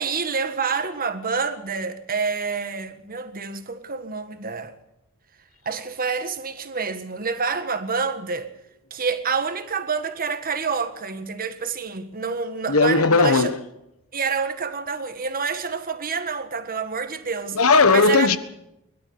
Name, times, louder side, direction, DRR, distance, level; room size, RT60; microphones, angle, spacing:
voice 1, 0.0-4.7 5.7-8.5 8.9-13.5 14.1-17.6 17.9-18.3, right 5 dB, 40° right, 1.6 m, -27 dB
voice 2, 12.7-13.6 17.5-18.4, left 3 dB, 75° left, 1.4 m, -17 dB
22.5 x 12.5 x 9.5 m
head